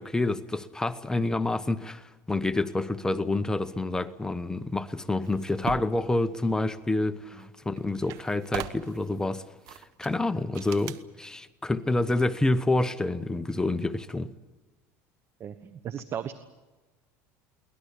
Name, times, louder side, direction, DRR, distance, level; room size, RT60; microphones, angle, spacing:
voice 1, 0.0-14.3, left 2 dB, 10° left, 1.0 m, -28 dB
sound 1, 5.2-6.0 7.4-7.5 7.8-9.1 9.7-10.1 10.5-11.0, right 12 dB, 60° right, 1.3 m, -38 dB
voice 2, 15.4-16.3, right 9 dB, 40° right, 1.2 m, -36 dB
23.0 x 19.0 x 8.5 m
supercardioid pair, 120°, 7 cm